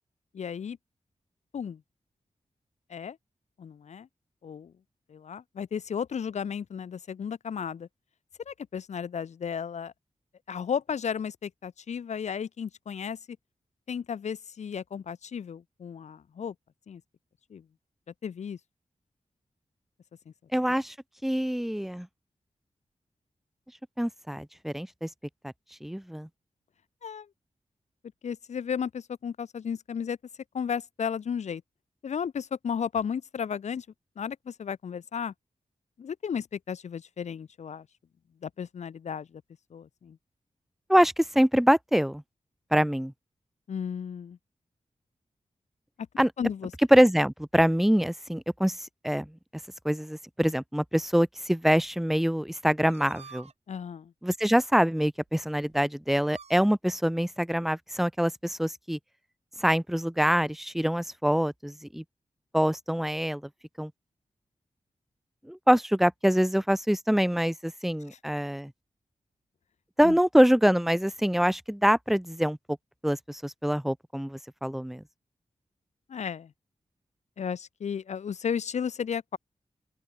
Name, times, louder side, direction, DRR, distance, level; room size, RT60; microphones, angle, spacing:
voice 1, 0.3-0.8 1.5-1.8 2.9-3.2 3.6-4.1 4.4-4.7 5.1-7.9 8.5-9.9 10.5-13.4 13.9-16.5 16.9-17.0 17.5-17.6 18.2-18.6 27.0-27.3 28.2-30.2 30.5-31.6 32.0-33.9 34.2-35.3 36.0-37.9 38.4-39.4 39.7-40.2 43.7-44.4 46.4-46.7 53.7-54.1 70.0-70.2 76.1-76.5 77.4-79.4, left 7 dB, 70° left, 0.6 m, -34 dB
voice 2, 20.5-20.9 21.2-22.1 24.0-25.1 25.4-25.5 25.8-26.3 40.9-42.2 42.7-43.1 46.2-46.3 46.9-48.8 49.0-49.3 49.8-53.5 54.2-59.0 59.6-62.0 62.5-63.4 63.8-63.9 65.5-68.7 70.0-72.6 73.0-75.0, equal, ahead, 0.3 m, -25 dB
sound 1, 52.9-53.5 54.3-54.4 55.3-55.4 55.6-55.9 56.2-56.6, right 5 dB, 60° right, 1.5 m, -49 dB
open air
wide cardioid pair, 140°, 12 cm